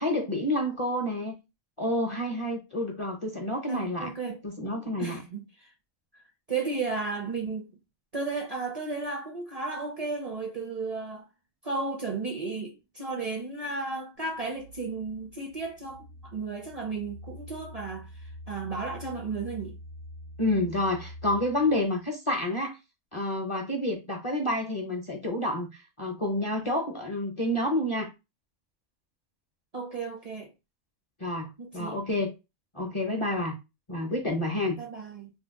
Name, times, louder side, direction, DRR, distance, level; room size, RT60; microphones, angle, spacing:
voice 1, 0.0-1.4 1.8-4.1 4.4-5.2 20.4-22.8 23.1-28.1 31.2-32.3 32.7-33.6 33.9-34.8, left 1 dB, 35° left, 0.5 m, -29 dB
voice 2, 3.7-4.4 5.0-5.7 6.1-6.2 6.5-7.7 8.1-11.3 11.6-19.7 29.7-30.5 31.6-32.0 34.8-35.3, right 4 dB, 45° right, 0.5 m, -34 dB
sound 1, 14.2-22.0, equal, 75° right, 1.0 m, -46 dB
2.7 x 2.2 x 3.5 m
omnidirectional pair, 1.2 m